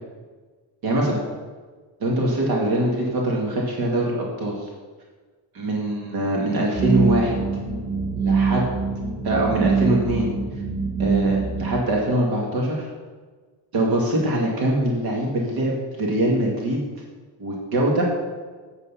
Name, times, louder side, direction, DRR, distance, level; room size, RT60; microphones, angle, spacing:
voice 1, 0.8-1.2 2.0-4.7 5.5-7.4 8.2-8.6 9.2-10.3 11.0-12.9 13.7-16.8 17.4-18.2, right 1 dB, 60° right, -1 dB, 2.1 m, -23 dB
sound 1, 6.7-11.7, right 5 dB, 10° right, 1.4 m, -24 dB
8.2 x 8.1 x 5.6 m, 1.4 s
cardioid pair, 165°, 41 cm